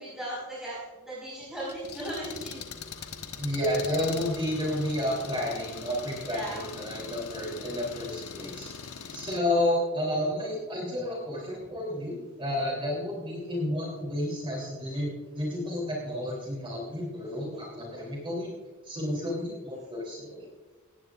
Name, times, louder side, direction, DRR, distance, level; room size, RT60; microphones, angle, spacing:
voice 1, 0.0-2.6 6.2-6.6, right 1 dB, ahead, -9 dB, 5.0 m, -37 dB
Engine, 1.6-9.4, left 6 dB, 75° left, 1.2 m, -41 dB
voice 2, 3.4-18.5 18.8-20.5, left 1 dB, 25° right, -3 dB, 3.4 m, -31 dB
18.5 x 17.0 x 2.5 m, 1.3 s
head